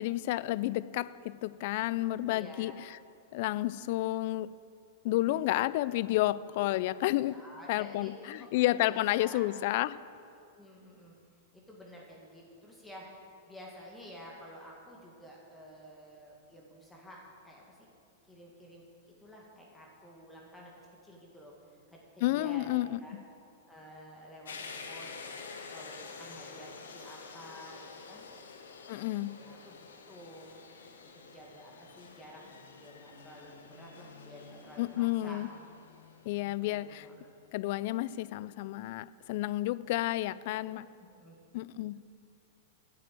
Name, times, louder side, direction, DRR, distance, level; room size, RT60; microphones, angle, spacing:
voice 1, 0.0-2.7 3.3-4.5 5.0-7.4 7.7-10.0 22.2-23.2 28.9-29.4 34.8-35.5 36.3-37.1 37.5-40.9 41.5-42.0, left 16 dB, 55° left, 18 dB, 0.3 m, -31 dB
voice 2, 2.2-2.7 5.1-5.8 7.2-9.8 10.6-11.2 11.5-13.0 13.5-17.2 17.4-17.9 18.3-18.8 19.2-20.7 21.0-21.5 21.9-22.7 23.0-23.2 23.7-24.6 24.9-28.3 29.4-29.7 30.1-30.6 31.0-32.4 32.8-35.4 36.7-37.3 41.2-41.4, equal, 10° left, -3 dB, 2.0 m, -51 dB
sound 1, 24.4-37.1, left 4 dB, 80° left, 1.1 m, -49 dB
9.2 x 7.7 x 7.8 m, 2.4 s
hypercardioid pair, 105°, 0 cm